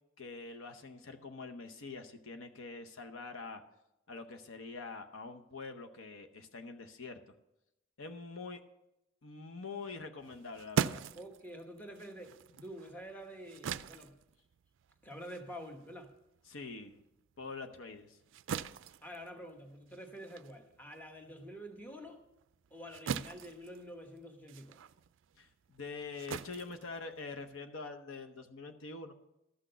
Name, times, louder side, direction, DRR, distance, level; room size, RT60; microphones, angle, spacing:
voice 1, 0.2-3.6 4.1-7.2 8.0-8.6 9.2-11.0 16.5-17.0 17.4-18.2 25.4-29.1, left 4 dB, 70° left, 7 dB, 0.9 m, -45 dB
sound 1, 10.2-17.0 17.4-27.6, right 7 dB, 60° right, 0.4 m, -42 dB
voice 2, 11.2-14.1 15.0-16.1 19.0-22.2 22.7-24.8, equal, 10° left, 4 dB, 1.1 m, -48 dB
13.0 x 6.2 x 6.7 m, 0.87 s
head